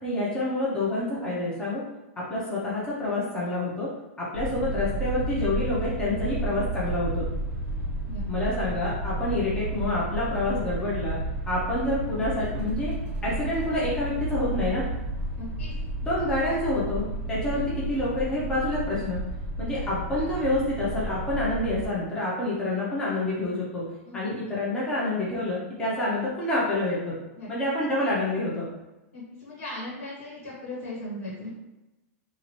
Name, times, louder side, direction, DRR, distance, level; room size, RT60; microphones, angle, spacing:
voice 1, 0.0-1.8 2.2-3.9 4.2-7.3 8.3-11.2 11.5-12.9 13.2-14.9 16.0-19.2 19.6-23.8 24.1-27.2 27.5-28.7, left 2 dB, 10° left, -7 dB, 0.7 m, -28 dB
sound 1, 4.3-21.9, right 1 dB, 20° right, 1.1 m, -32 dB
voice 2, 15.4-15.7 24.0-24.2 27.4-27.5 29.1-31.5, left 1 dB, 75° left, -7 dB, 1.4 m, -38 dB
2.7 x 2.5 x 3.1 m, 1.0 s
supercardioid pair, 165°, 8 cm